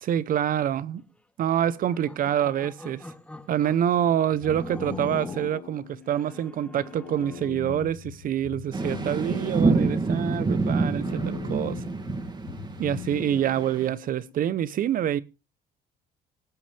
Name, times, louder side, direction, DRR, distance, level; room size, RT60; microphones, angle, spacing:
voice 1, 0.0-1.0 1.4-3.0 3.5-11.9 12.8-15.2, right 10 dB, 55° right, 0.9 m, -26 dB
sound 1, 1.8-3.9 4.4-5.6 6.1-7.5, left 1 dB, 5° left, 1.3 m, -42 dB
sound 2, 4.3-14.3, left 12 dB, 75° left, 1.0 m, -41 dB
sound 3, 8.7-13.9, right 3 dB, 25° right, 2.4 m, -27 dB
19.5 x 8.5 x 3.4 m
cardioid pair, 110°, 17 cm